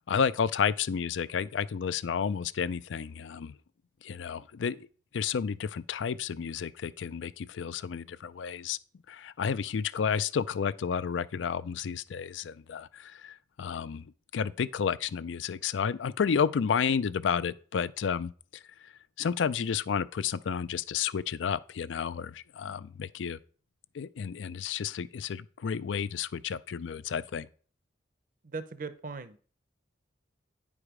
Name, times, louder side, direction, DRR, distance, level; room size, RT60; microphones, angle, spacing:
voice 1, 0.1-3.5 4.0-4.9 5.1-8.8 9.1-14.0 14.3-18.3 19.2-23.4 23.9-27.5, left 6 dB, 85° left, 0.4 m, -31 dB
voice 2, 28.4-29.4, right 4 dB, 45° right, 0.6 m, -39 dB
9.7 x 4.9 x 4.9 m
head